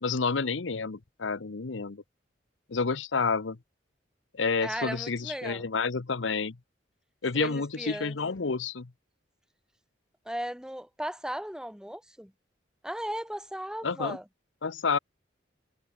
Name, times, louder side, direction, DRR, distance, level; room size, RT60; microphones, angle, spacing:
voice 1, 0.0-2.0 2.7-3.6 4.3-6.6 7.2-8.9 13.8-14.2 14.6-15.0, left 4 dB, 80° left, 0.9 m, -29 dB
voice 2, 4.6-5.7 7.3-8.2 10.3-12.3 12.8-14.2, equal, 5° right, 1.9 m, -36 dB
head